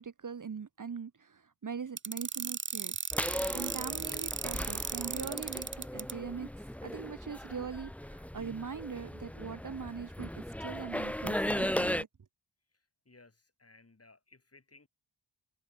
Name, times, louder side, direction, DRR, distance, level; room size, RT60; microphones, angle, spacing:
voice 1, 0.0-3.0 3.5-6.5 6.8-12.1, right 6 dB, 45° right, 1.3 m, -41 dB
sound 1, 2.0-6.1, right 5 dB, 25° right, 0.7 m, -36 dB
sound 2, 3.1-12.0, equal, 5° left, 1.1 m, -37 dB
voice 2, 13.1-14.9, left 3 dB, 30° left, 5.8 m, -60 dB
supercardioid pair, 40°, 45 cm